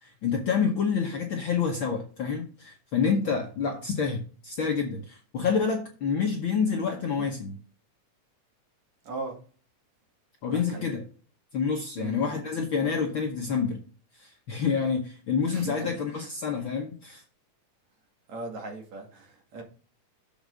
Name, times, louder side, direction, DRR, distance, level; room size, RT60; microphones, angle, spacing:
voice 1, 0.0-7.6 10.4-11.0 11.5-13.8 14.1-17.2, left 6 dB, 60° left, 1.4 m, -28 dB
voice 2, 9.0-9.4 10.4-10.9 12.0-12.3 15.5-16.3 18.3-19.6, right 3 dB, 65° right, 3.4 m, -39 dB
7.1 x 5.3 x 6.3 m
omnidirectional pair, 3.4 m